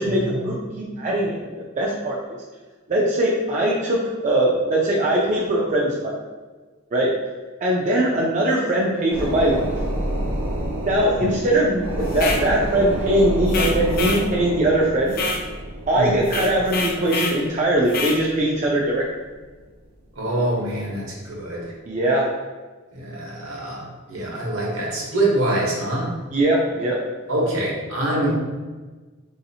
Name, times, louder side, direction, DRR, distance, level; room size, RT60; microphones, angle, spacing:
voice 1, 0.1-0.5 1.0-1.4 1.8-2.4 2.9-6.1 6.9-7.1 7.6-9.6 10.8-15.2 15.9-19.0 21.9-22.3 26.3-27.0, right 1 dB, 35° right, -4 dB, 0.4 m, -21 dB
sound 1, 9.1-19.1 19.5-19.6, right 1 dB, 85° right, 0.9 m, -29 dB
sound 2, 12.1-12.5 13.5-14.3 15.1-15.4 16.2-17.4 17.9-18.2, left 3 dB, 45° left, 0.4 m, -26 dB
voice 2, 20.2-21.7 22.9-26.1 27.3-28.3, right 1 dB, 70° right, -3 dB, 1.0 m, -25 dB
3.9 x 2.7 x 2.7 m, 1.3 s
head